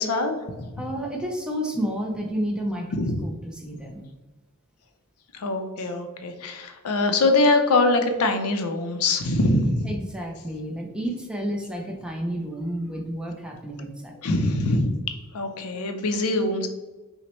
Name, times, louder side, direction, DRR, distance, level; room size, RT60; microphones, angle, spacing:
voice 1, 0.0-0.7 2.9-3.2 5.3-9.9 14.2-14.9 15.3-16.7, left 2 dB, 75° left, 6 dB, 0.5 m, -23 dB
voice 2, 0.8-2.9 3.2-3.3 3.6-4.0 9.9-14.2, equal, 5° right, 0 dB, 0.5 m, -30 dB
5.8 x 2.1 x 3.0 m, 1.2 s
head